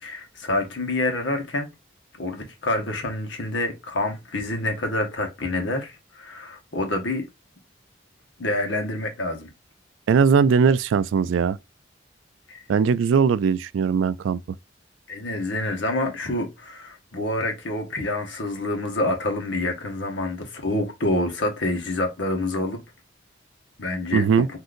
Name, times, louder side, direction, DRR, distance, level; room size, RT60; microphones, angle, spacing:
voice 1, 0.0-1.7 2.2-7.3 8.4-9.5 12.5-12.6 15.1-22.8 23.8-24.3, left 2 dB, 70° left, 1.1 m, -27 dB
voice 2, 10.1-11.6 12.7-14.4 24.1-24.5, right 6 dB, 85° right, 0.3 m, -19 dB
3.7 x 2.7 x 2.4 m
head